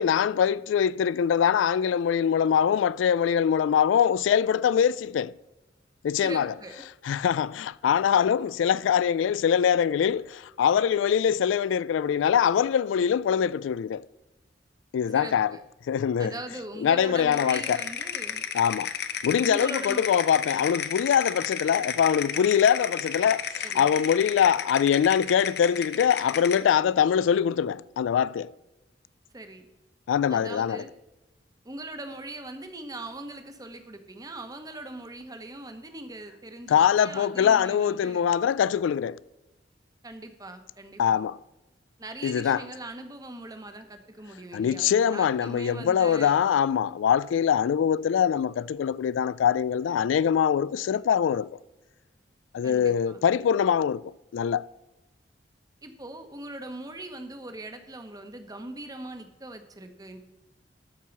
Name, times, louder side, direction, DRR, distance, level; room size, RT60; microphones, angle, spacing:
voice 1, 0.0-5.3 6.0-6.5 7.0-14.1 14.9-15.6 15.9-16.3 16.8-17.8 18.5-18.9 19.2-28.5 30.1-30.8 36.7-39.2 41.0-41.4 42.2-42.6 44.5-51.5 52.5-54.7, left 8 dB, 90° left, 0.3 m, -23 dB
voice 2, 6.1-6.8 15.1-15.6 16.2-18.4 19.4-20.1 23.6-23.9 29.3-29.7 30.3-30.9 31.6-38.3 40.0-41.2 42.0-46.4 52.6-53.2 55.8-60.2, right 2 dB, 20° right, 1.1 m, -41 dB
sound 1, 17.3-26.7, left 8 dB, 60° left, 0.8 m, -33 dB
13.0 x 4.7 x 7.1 m
head